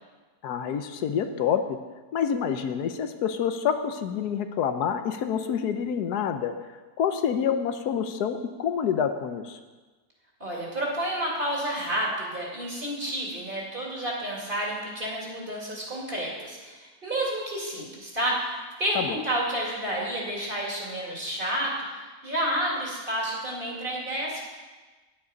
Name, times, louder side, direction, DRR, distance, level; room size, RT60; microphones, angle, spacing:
voice 1, 0.4-1.8 2.1-6.5 7.0-9.6 18.9-19.2, left 8 dB, 70° left, 9 dB, 1.2 m, -27 dB
voice 2, 10.4-24.4, right 1 dB, 30° right, -4 dB, 2.7 m, -30 dB
9.7 x 9.6 x 5.2 m, 1.3 s
omnidirectional pair, 1.8 m